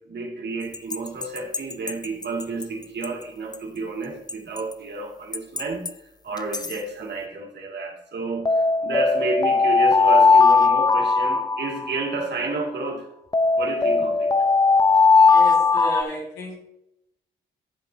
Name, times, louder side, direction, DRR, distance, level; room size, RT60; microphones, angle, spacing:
voice 1, 0.1-5.8 6.2-13.1 13.6-14.3, right 3 dB, 60° right, 1 dB, 2.1 m, -30 dB
sound 1, 0.7-2.6 3.0-3.1 3.5-3.6 4.3-4.7 5.3-5.9 6.4-6.7 8.5-12.2 13.3-16.0, left 4 dB, 20° left, 0.7 m, -18 dB
voice 2, 15.3-16.5, left 1 dB, 90° left, -3 dB, 2.5 m, -33 dB
12.0 x 7.6 x 2.7 m, 0.83 s
hypercardioid pair, 40°, 20 cm